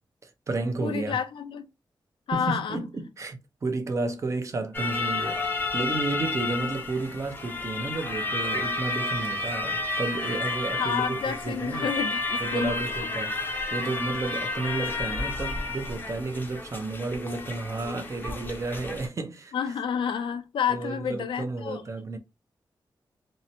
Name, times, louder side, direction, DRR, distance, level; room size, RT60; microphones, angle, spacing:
voice 1, 0.2-1.2 2.3-11.9 12.4-13.4 13.7-19.8 20.7-22.2, right 3 dB, 35° right, 0.5 m, -32 dB
voice 2, 0.8-1.7 2.3-2.8 10.8-12.7 13.2-13.3 19.5-21.8, left 7 dB, 85° left, 0.4 m, -30 dB
sound 1, 4.7-19.1, left 3 dB, 25° left, 0.6 m, -31 dB
2.7 x 2.1 x 2.7 m
wide cardioid pair, 165°, 8 cm